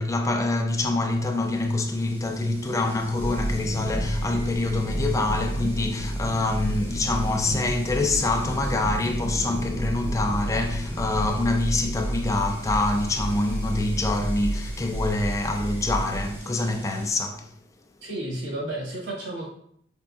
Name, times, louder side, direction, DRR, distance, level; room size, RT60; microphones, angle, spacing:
voice 1, 0.0-17.5, left 2 dB, 20° left, 0.3 m, -25 dB
sound 1, 1.1-17.1, equal, 15° right, 0.7 m, -38 dB
sound 2, 3.2-16.4, right 1 dB, 70° left, 0.7 m, -31 dB
voice 2, 18.0-19.5, right 1 dB, 75° right, 1.4 m, -32 dB
4.7 x 2.6 x 2.3 m
head